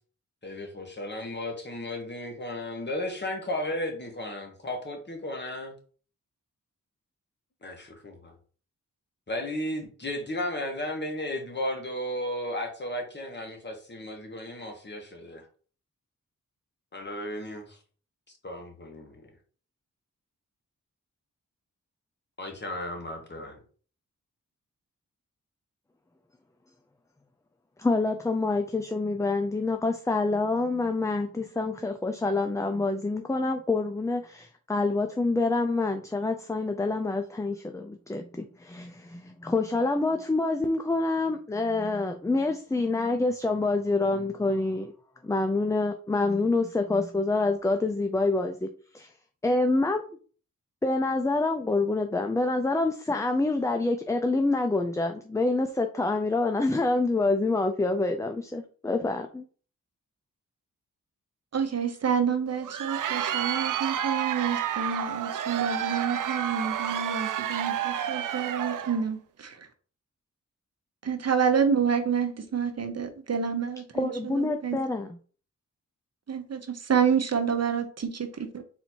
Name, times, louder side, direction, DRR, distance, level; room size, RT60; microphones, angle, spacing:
voice 1, 0.4-5.8 7.6-8.3 9.3-15.4 16.9-17.8 18.4-19.2 22.4-23.6, left 1 dB, 35° left, 1.4 m, -34 dB
voice 2, 27.8-44.9 45.2-48.7 48.9-49.1 49.4-50.0 50.8-59.4 73.9-75.2, left 3 dB, 10° left, 0.4 m, -27 dB
voice 3, 61.5-69.6 71.0-74.8 76.3-77.8, right 7 dB, 50° right, 0.8 m, -28 dB
Crowd, 62.5-69.0, right 10 dB, 75° right, 0.5 m, -30 dB
4.2 x 2.7 x 4.4 m
cardioid pair, 70°, 32 cm